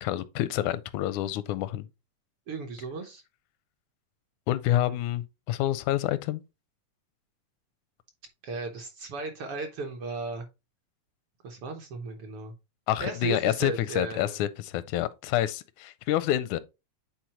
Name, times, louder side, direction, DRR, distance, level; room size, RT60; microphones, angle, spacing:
voice 1, 0.0-1.9 4.5-6.4 12.9-16.6, left 13 dB, 85° left, 2.0 m, -28 dB
voice 2, 2.5-3.2 4.8-5.0 8.4-10.5 11.4-12.5 13.0-14.4, right 3 dB, 60° right, 1.6 m, -35 dB
9.3 x 4.2 x 2.9 m
omnidirectional pair, 3.4 m